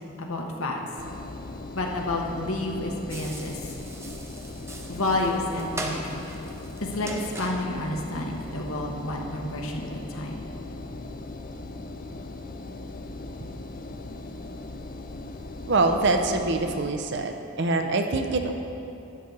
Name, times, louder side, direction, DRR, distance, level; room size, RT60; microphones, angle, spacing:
voice 1, 0.2-0.8 1.7-3.6 4.9-6.2 6.8-10.5, left 2 dB, 75° left, 1 dB, 1.2 m, -30 dB
Engine, 1.0-16.9, left 2 dB, 40° left, 0.5 m, -39 dB
sound 1, 3.1-8.8, right 1 dB, 10° right, 0.6 m, -40 dB
voice 2, 15.7-17.3 17.6-18.5, right 3 dB, 50° right, 5 dB, 0.6 m, -24 dB
12.0 x 8.5 x 4.0 m, 2.8 s
head